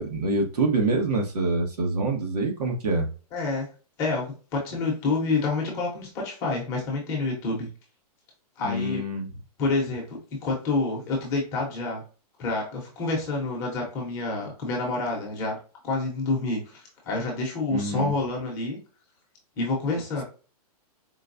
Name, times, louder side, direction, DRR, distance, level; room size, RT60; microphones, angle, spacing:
voice 1, 0.0-3.1 8.6-9.3 17.7-18.1, right 2 dB, 85° right, 2 dB, 1.4 m, -26 dB
voice 2, 3.3-3.7 4.0-7.7 8.6-9.0 9.6-12.0 12.4-15.6 15.8-18.8 19.6-20.2, left 3 dB, 15° left, -2 dB, 0.9 m, -28 dB
4.5 x 2.2 x 2.6 m, 0.36 s
hypercardioid pair, 175°, 20 cm